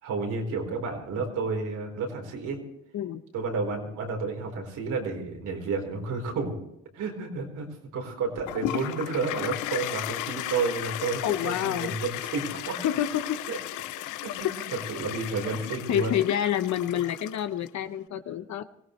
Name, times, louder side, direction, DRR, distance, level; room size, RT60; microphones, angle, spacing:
voice 1, 0.0-2.6 3.3-6.6 6.9-7.7 7.9-12.8 13.5-13.6 14.2-14.5 14.9-16.1, right 4 dB, 80° right, 3 dB, 4.2 m, -31 dB
Toilet flush, 8.5-17.7, left 15 dB, 85° left, 0.5 m, -35 dB
voice 2, 11.2-11.9 12.8-13.4 15.9-18.6, left 10 dB, 65° left, 9 dB, 1.0 m, -28 dB
23.0 x 17.0 x 3.2 m, 0.80 s
cardioid pair, 90°, 30 cm